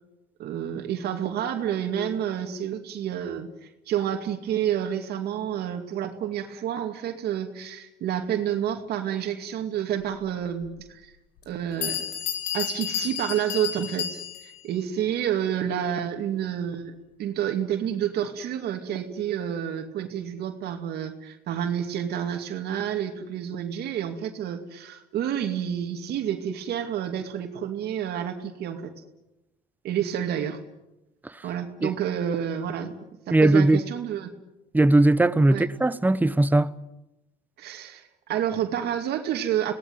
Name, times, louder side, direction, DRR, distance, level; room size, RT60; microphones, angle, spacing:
voice 1, 0.4-11.2 11.5-12.1 12.5-16.9 17.2-28.9 29.8-30.6 31.4-32.9 33.3-34.3 35.5-35.6 37.6-39.7, right 9 dB, 70° right, 2.4 m, -29 dB
Bell, 10.6-10.7 11.4-11.5 11.8-14.6, left 10 dB, 80° left, 5.8 m, -31 dB
voice 2, 33.3-33.8 34.7-36.7, right 2 dB, 10° right, 1.0 m, -19 dB
27.5 x 18.5 x 9.5 m
cardioid pair, 110°, 17 cm